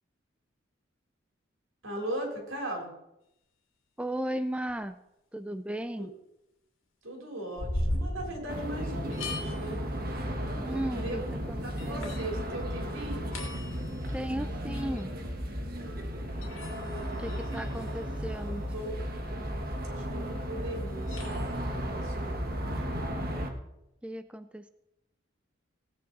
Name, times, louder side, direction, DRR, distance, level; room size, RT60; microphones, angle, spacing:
voice 1, 1.8-2.9 6.0-6.1 7.0-9.8 10.7-11.2 11.6-13.4 16.8-17.9 18.4-19.0 19.3-19.5 19.9-22.6, right 1 dB, 80° right, 0 dB, 4.0 m, -39 dB
voice 2, 4.0-5.0 5.3-6.1 10.6-11.2 11.5-11.6 11.9-12.2 14.1-15.1 17.2-18.6 24.0-24.7, right 1 dB, 5° right, 10 dB, 0.3 m, -35 dB
sound 1, 4.7-4.8 7.6-8.8 9.1-9.9 10.6-10.7 11.4-11.5 11.8-12.3 12.8-12.9 13.1-14.2 14.7-15.0 16.4-18.1 20.6-21.6, left 1 dB, 85° left, 2.8 m, -37 dB
sound 2, 8.5-23.5, equal, 50° right, 1.5 m, -34 dB
17.0 x 9.3 x 4.1 m, 0.87 s
head